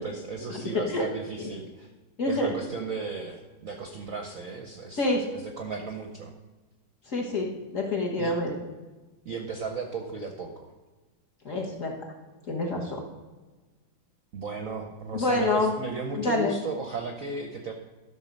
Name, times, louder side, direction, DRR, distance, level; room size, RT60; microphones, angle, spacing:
voice 1, 0.0-1.9 2.3-6.3 8.2-8.3 9.2-10.7 14.3-17.7, right 4 dB, 60° right, 3 dB, 0.9 m, -35 dB
voice 2, 0.7-1.1 1.4-1.5 2.2-2.5 5.0-5.2 7.1-8.5 11.4-12.1 12.4-13.0 15.1-15.7 16.2-16.5, left 2 dB, 40° left, 0 dB, 1.6 m, -27 dB
12.5 x 6.3 x 5.3 m, 1.2 s
omnidirectional pair, 2.3 m